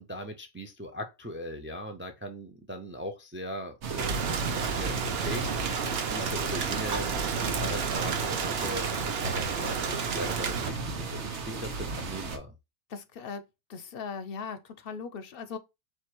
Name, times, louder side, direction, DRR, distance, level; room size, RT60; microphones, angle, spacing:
voice 1, 0.0-5.4 6.1-7.1 7.4-9.8 10.1-12.5, equal, 20° right, 0.3 m, -39 dB
sound 1, 3.8-12.4, right 4 dB, 85° right, 1.2 m, -34 dB
Rain, 4.0-10.7, right 6 dB, 70° right, 1.0 m, -32 dB
voice 2, 12.9-13.4 13.7-15.6, left 5 dB, 65° left, 0.7 m, -39 dB
4.5 x 2.5 x 4.4 m
omnidirectional pair, 1.1 m